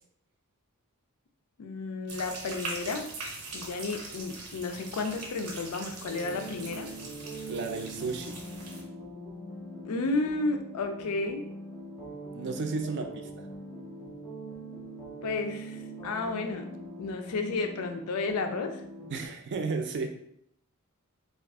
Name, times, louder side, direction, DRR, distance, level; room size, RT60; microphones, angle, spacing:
voice 1, 1.6-3.1 3.5-6.9 9.8-11.4 15.2-16.7 17.0-18.8, left 3 dB, 80° left, 6 dB, 0.4 m, -32 dB
sound 1, 2.1-8.8, right 2 dB, 90° right, 0.7 m, -42 dB
sound 2, 6.0-19.3, right 1 dB, 10° left, 0.6 m, -43 dB
voice 2, 7.4-8.4 12.3-13.1 13.4-13.5 19.1-20.1, right 4 dB, 50° right, 5 dB, 0.4 m, -33 dB
2.4 x 2.3 x 3.4 m, 0.72 s
head